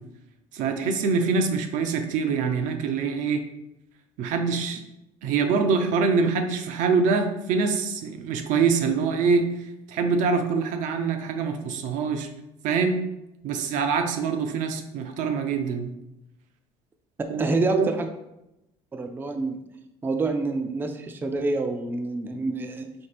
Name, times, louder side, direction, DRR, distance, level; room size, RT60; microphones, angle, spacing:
voice 1, 0.5-3.4 4.2-4.8 5.2-9.5 9.9-12.3 12.6-13.0 13.4-15.9 17.3-17.4 17.7-17.9, right 5 dB, 70° right, 6 dB, 0.5 m, -24 dB
voice 2, 17.2-18.1 18.9-19.6 20.0-22.9, right 3 dB, 15° right, 6 dB, 0.3 m, -27 dB
4.2 x 2.8 x 3.3 m, 0.89 s
cardioid pair, 110°, 14 cm